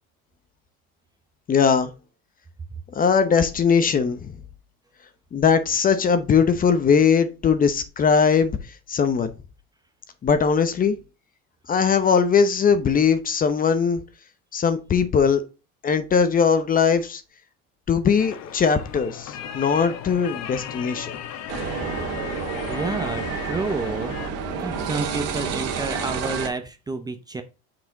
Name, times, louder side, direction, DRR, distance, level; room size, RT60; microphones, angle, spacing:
voice 1, 1.5-1.9 2.9-4.3 5.3-8.5 8.9-9.3 10.2-11.0 11.7-14.0 14.5-15.4 15.8-17.2 17.9-21.2, left 6 dB, 25° left, 0.8 m, -20 dB
sound 1, 18.2-24.3, left 9 dB, 55° left, 1.0 m, -36 dB
sound 2, 21.5-26.5, right 6 dB, 50° right, 1.6 m, -29 dB
voice 2, 22.7-24.2 24.6-27.4, right 3 dB, 10° right, 0.7 m, -30 dB
6.1 x 4.8 x 3.9 m
cardioid pair, 135°, 31 cm